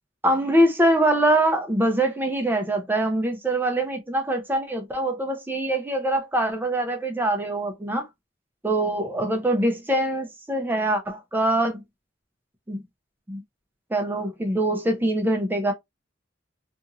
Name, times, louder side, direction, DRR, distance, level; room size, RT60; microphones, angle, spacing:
voice 1, 0.2-8.1 8.6-11.8 12.7-12.8 13.3-13.4 13.9-15.7, right 1 dB, 10° right, 0.5 m, -23 dB
2.8 x 2.5 x 2.4 m
head